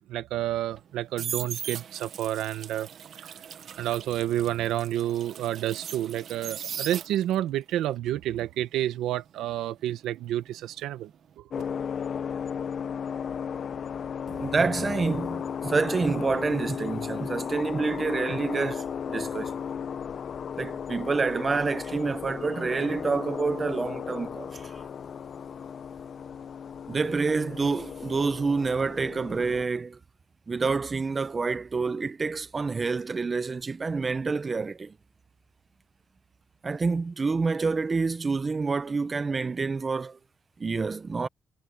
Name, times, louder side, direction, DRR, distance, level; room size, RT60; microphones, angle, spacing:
voice 1, 0.0-2.9 3.2-3.3 3.8-11.1 11.4-11.6, right 12 dB, 85° right, 1.5 m, -29 dB
sound 1, 0.7-7.5 7.8-10.7 11.0-11.3, right 8 dB, 60° right, 1.2 m, -39 dB
sound 2, 11.5-29.6, left 7 dB, 50° left, 0.7 m, -35 dB
voice 2, 14.3-19.6 20.6-24.8 26.9-30.0 30.5-34.9 36.6-40.2 40.6-41.3, right 4 dB, 30° right, 0.8 m, -28 dB
cardioid pair, 110°, 0 cm